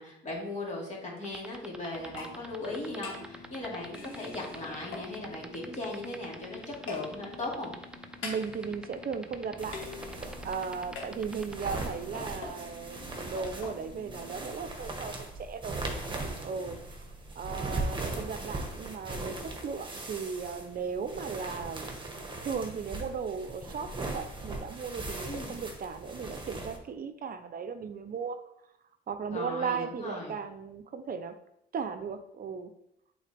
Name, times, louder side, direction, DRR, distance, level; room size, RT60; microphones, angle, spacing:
voice 1, 0.0-7.7 25.2-25.6 29.3-30.3, left 2 dB, 35° left, -4 dB, 2.6 m, -38 dB
sound 1, 1.2-11.5, right 1 dB, 5° right, 0.6 m, -44 dB
sound 2, 1.9-14.6, left 4 dB, 85° left, 1.5 m, -45 dB
voice 2, 8.2-9.8 10.4-15.8 16.4-17.0 17.4-22.0 22.4-28.4 29.1-31.4 31.7-32.7, right 6 dB, 45° right, 9 dB, 0.7 m, -36 dB
sound 3, 9.6-26.8, right 2 dB, 25° right, 1.3 m, -39 dB
8.0 x 3.9 x 3.4 m, 0.79 s
cardioid pair, 90°, 20 cm